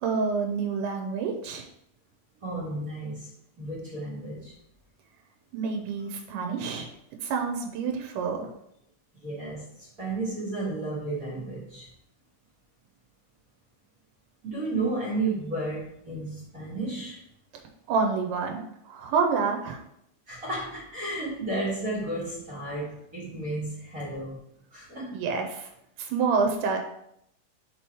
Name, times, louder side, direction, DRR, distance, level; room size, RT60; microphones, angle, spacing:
voice 1, 0.0-1.7 5.5-6.9 7.2-8.5 17.9-19.8 25.1-25.7 26.0-26.8, right 5 dB, 85° right, 3 dB, 2.3 m, -28 dB
voice 2, 2.4-3.3 3.6-4.6 9.2-11.9 14.4-17.2 20.3-24.4 24.7-25.2, right 2 dB, 35° right, -7 dB, 1.5 m, -33 dB
4.9 x 4.5 x 4.7 m, 0.74 s
omnidirectional pair, 3.7 m